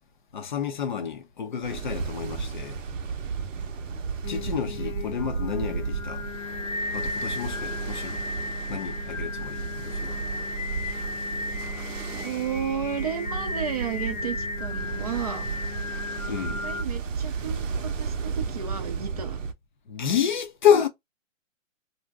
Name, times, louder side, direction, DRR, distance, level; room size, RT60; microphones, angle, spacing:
voice 1, 0.3-2.8 4.3-6.3 6.9-8.2 8.7-10.2 16.3-16.7 19.9-20.9, left 8 dB, 40° left, 0.5 m, -28 dB
Ocean, 1.6-19.5, right 5 dB, 70° right, 0.7 m, -33 dB
Singing, 4.2-16.8, left 3 dB, 75° left, 0.9 m, -35 dB
voice 2, 12.2-15.5 16.3-16.4 16.6-19.4, right 8 dB, 30° right, 0.4 m, -33 dB
2.5 x 2.1 x 3.4 m
hypercardioid pair, 150°, 40 cm